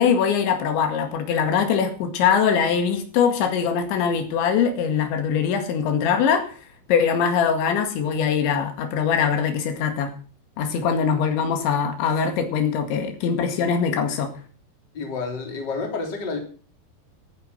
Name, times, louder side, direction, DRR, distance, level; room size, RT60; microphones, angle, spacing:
voice 1, 0.0-6.5 6.9-10.1 10.6-14.3, left 7 dB, 85° left, 6 dB, 4.3 m, -22 dB
voice 2, 14.9-16.4, left 4 dB, 25° left, 3 dB, 3.4 m, -29 dB
15.5 x 9.8 x 6.2 m, 0.42 s
omnidirectional pair, 5.1 m